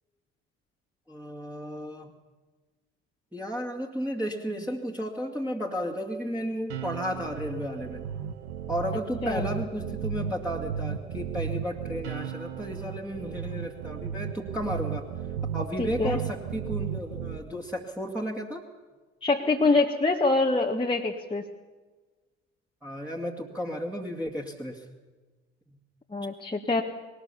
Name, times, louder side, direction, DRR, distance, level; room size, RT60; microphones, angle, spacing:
voice 1, 1.1-2.1 3.3-8.0 8.7-15.1 15.5-18.6 22.8-24.8, equal, 5° right, -2 dB, 2.3 m, -33 dB
sound 1, 6.7-17.4, right 8 dB, 70° right, 1.1 m, -35 dB
voice 2, 15.8-16.2 19.2-21.5 26.1-26.8, left 3 dB, 15° left, 1 dB, 1.5 m, -25 dB
20.5 x 19.0 x 7.1 m, 1.3 s
figure-of-eight pair, 50°, 36 cm